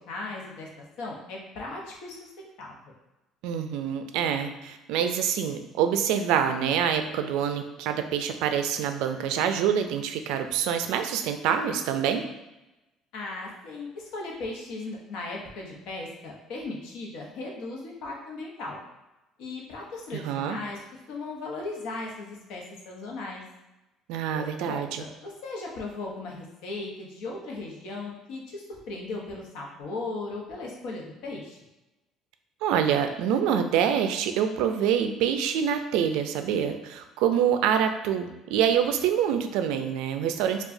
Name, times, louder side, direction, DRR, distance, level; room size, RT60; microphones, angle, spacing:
voice 1, 0.1-2.9 13.1-18.8 19.4-20.8 21.1-23.4 24.3-31.6, left 3 dB, 70° left, -1 dB, 0.8 m, -37 dB
voice 2, 3.4-12.2 20.1-20.6 24.1-25.0 32.6-40.6, right 8 dB, 80° right, 7 dB, 0.3 m, -26 dB
4.7 x 2.3 x 2.6 m, 0.98 s
cardioid pair, 160°, 0 cm